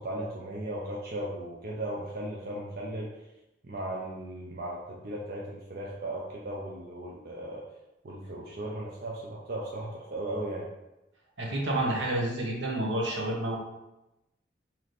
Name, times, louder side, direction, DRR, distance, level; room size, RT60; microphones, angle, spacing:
voice 1, 0.0-3.1 3.6-7.6 8.0-10.7, right 1 dB, 50° right, -4 dB, 0.5 m, -36 dB
voice 2, 11.4-13.6, right 1 dB, 80° right, -2 dB, 1.0 m, -29 dB
4.1 x 2.9 x 3.2 m, 0.95 s
head